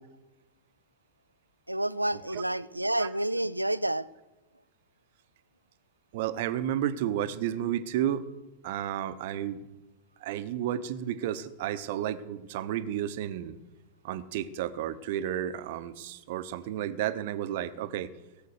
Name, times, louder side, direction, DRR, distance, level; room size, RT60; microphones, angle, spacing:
voice 1, 1.7-4.1, right 1 dB, 85° right, 0.4 m, -29 dB
voice 2, 6.1-8.2 8.6-9.6 10.2-13.6 14.0-18.1, right 11 dB, 50° right, 0.9 m, -32 dB
17.5 x 7.5 x 6.6 m
figure-of-eight pair, 90°, 0 cm